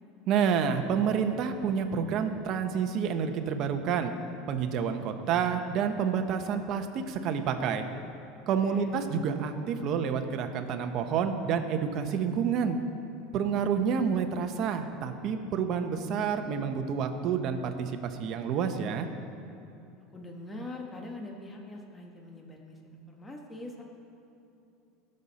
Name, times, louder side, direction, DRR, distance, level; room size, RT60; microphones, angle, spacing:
voice 1, 0.3-4.1 4.5-7.8 8.5-12.8 13.3-19.1, right 7 dB, 45° right, 6 dB, 0.9 m, -29 dB
voice 2, 8.6-9.0 20.1-23.8, left 2 dB, 15° left, 1 dB, 1.3 m, -43 dB
19.5 x 6.6 x 4.2 m, 2.8 s
supercardioid pair, 135°, 0 cm